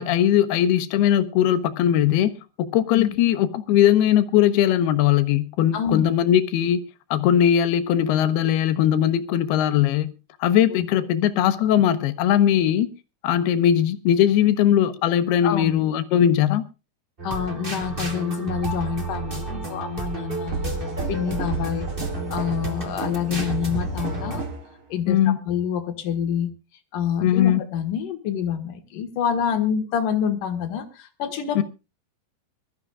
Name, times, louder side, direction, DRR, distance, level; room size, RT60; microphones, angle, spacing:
voice 1, 0.0-2.3 2.6-6.8 7.1-10.1 10.4-12.9 13.2-16.7 25.1-25.4 27.2-27.6 31.6-31.7, left 10 dB, 80° left, 2.8 m, -20 dB
voice 2, 5.7-6.1 10.7-10.9 15.4-15.8 17.2-21.9 22.3-24.4 24.9-26.5 26.9-31.6, left 8 dB, 60° left, 2.8 m, -27 dB
sound 1, 17.2-24.4, right 2 dB, 25° right, 1.2 m, -31 dB
sound 2, 20.5-24.7, right 2 dB, 40° right, 2.3 m, -32 dB
24.0 x 13.0 x 2.4 m
omnidirectional pair, 4.6 m